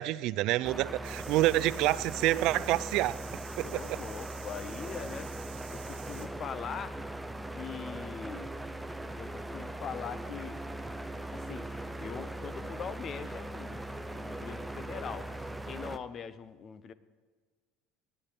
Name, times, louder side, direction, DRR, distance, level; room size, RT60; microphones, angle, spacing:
voice 1, 0.0-3.2 3.6-4.0, right 16 dB, 60° right, 18 dB, 0.3 m, -28 dB
sound 1, 0.6-16.0, right 1 dB, 5° right, 0.6 m, -40 dB
sound 2, 1.0-6.3, right 12 dB, 85° right, 1.3 m, -50 dB
voice 2, 3.6-5.3 5.7-7.0 7.6-8.5 9.2-10.6 11.3-11.7 12.0-16.9, left 7 dB, 35° left, 15 dB, 0.6 m, -42 dB
9.9 x 9.0 x 8.8 m, 1.4 s
cardioid pair, 130°, 0 cm